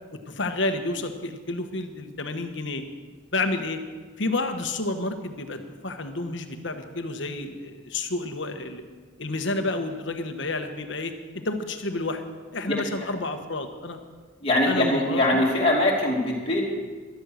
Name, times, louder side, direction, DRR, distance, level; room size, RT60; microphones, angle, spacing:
voice 1, 0.3-2.8 3.3-3.8 4.2-8.8 9.2-12.2 12.5-14.0 14.7-15.2, left 2 dB, 65° left, 7 dB, 1.2 m, -30 dB
voice 2, 14.4-16.6, left 1 dB, 30° left, -3 dB, 2.4 m, -22 dB
13.5 x 12.0 x 6.5 m, 1.5 s
head